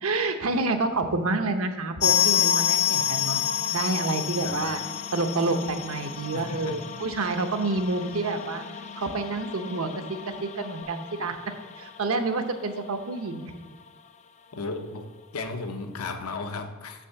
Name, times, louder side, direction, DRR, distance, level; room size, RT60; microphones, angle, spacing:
voice 1, 0.0-3.4 3.7-4.8 5.1-8.6 9.0-11.4 11.8-13.5, right 3 dB, 75° right, 6 dB, 0.8 m, -28 dB
sound 1, 0.8-10.8, left 5 dB, 40° right, 0.6 m, -47 dB
sound 2, 2.0-12.6 12.8-12.9 13.1-13.3 13.9-14.0, left 10 dB, 30° left, 0.3 m, -29 dB
voice 2, 6.3-6.9 14.5-15.1 15.3-17.1, left 3 dB, 90° left, 6 dB, 0.8 m, -35 dB
6.2 x 6.1 x 7.0 m, 1.4 s
head